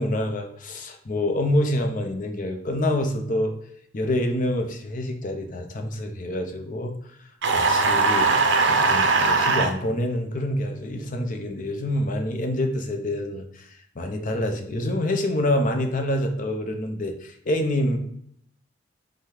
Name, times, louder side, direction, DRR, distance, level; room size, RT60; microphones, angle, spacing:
voice 1, 0.0-3.5 3.9-8.4 8.7-18.0, left 1 dB, 45° left, 5 dB, 0.6 m, -27 dB
sound 1, 7.4-9.7, right 3 dB, 65° right, 0.5 m, -20 dB
5.5 x 2.2 x 3.4 m, 0.67 s
head